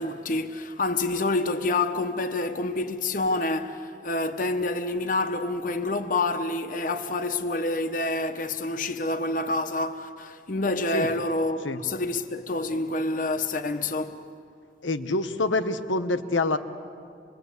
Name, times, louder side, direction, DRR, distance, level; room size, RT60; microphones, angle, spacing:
voice 1, 0.0-14.2, left 2 dB, 45° left, 0.9 m, -28 dB
voice 2, 14.8-16.6, left 2 dB, 80° left, 1.2 m, -26 dB
27.0 x 22.5 x 8.2 m
head